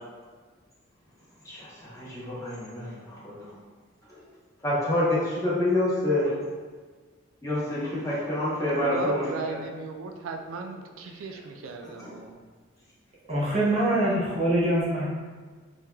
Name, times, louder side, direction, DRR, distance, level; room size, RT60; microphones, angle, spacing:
voice 1, 1.4-3.5 4.6-6.3 7.4-9.6 12.0-12.1, left 1 dB, 15° left, -8 dB, 0.7 m, -27 dB
voice 2, 8.6-12.4, right 4 dB, 80° right, 4 dB, 0.3 m, -36 dB
voice 3, 13.3-15.1, right 1 dB, 30° right, -6 dB, 0.7 m, -24 dB
3.1 x 2.2 x 2.2 m, 1.5 s
head